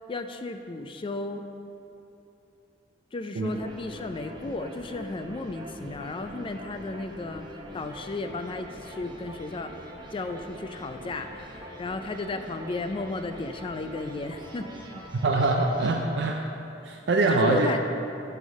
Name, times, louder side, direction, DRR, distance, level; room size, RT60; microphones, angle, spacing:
voice 1, 0.1-1.4 3.1-7.5 7.7-9.7 10.1-14.6 14.9-15.0 17.3-17.8, left 3 dB, 30° left, 8 dB, 0.4 m, -34 dB
sound 1, 3.4-15.9, equal, 25° right, 0.7 m, -43 dB
voice 2, 15.2-16.4 16.8-17.7, right 3 dB, 70° right, 2 dB, 0.4 m, -24 dB
9.1 x 3.5 x 6.3 m, 2.8 s
head